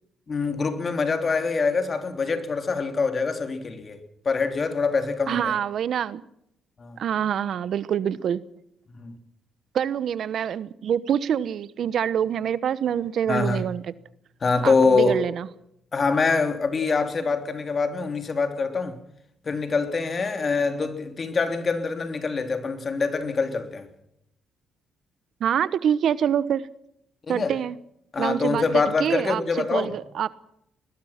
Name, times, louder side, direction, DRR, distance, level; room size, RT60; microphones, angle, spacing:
voice 1, 0.3-4.0 4.2-5.5 6.8-7.0 9.0-9.1 13.3-13.6 14.4-15.2 15.9-19.0 19.4-23.9 27.3-27.5 28.1-29.9, left 4 dB, 40° left, 3.3 m, -24 dB
voice 2, 5.3-6.2 7.0-8.4 9.7-13.9 14.6-15.5 25.4-26.7 27.3-27.8 28.2-30.3, right 9 dB, 65° right, 1.0 m, -26 dB
21.5 x 21.0 x 5.9 m
cardioid pair, 90°, 0 cm